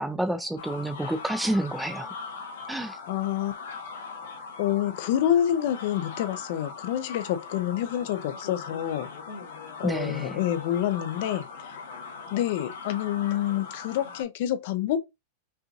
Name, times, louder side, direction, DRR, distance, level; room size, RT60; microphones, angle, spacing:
voice 1, 0.0-2.1 2.7-3.0 9.8-10.4, right 1 dB, 5° right, 0.5 m, -29 dB
sound 1, 0.6-14.2, left 4 dB, 90° left, 1.7 m, -40 dB
voice 2, 3.1-3.5 4.6-9.1 9.8-11.7 12.3-15.0, left 11 dB, 55° left, 0.6 m, -27 dB
5.5 x 2.6 x 2.6 m
supercardioid pair, 160°, 0 cm